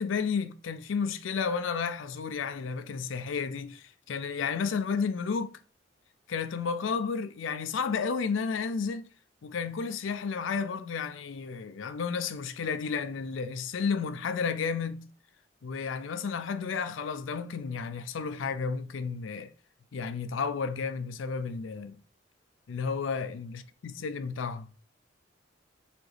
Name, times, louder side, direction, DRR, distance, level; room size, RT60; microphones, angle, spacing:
voice 1, 0.0-5.6 6.3-9.1 9.4-15.1 15.6-19.5 19.9-22.0 22.7-24.7, left 5 dB, 80° left, 0.4 m, -32 dB
4.2 x 2.9 x 3.2 m
head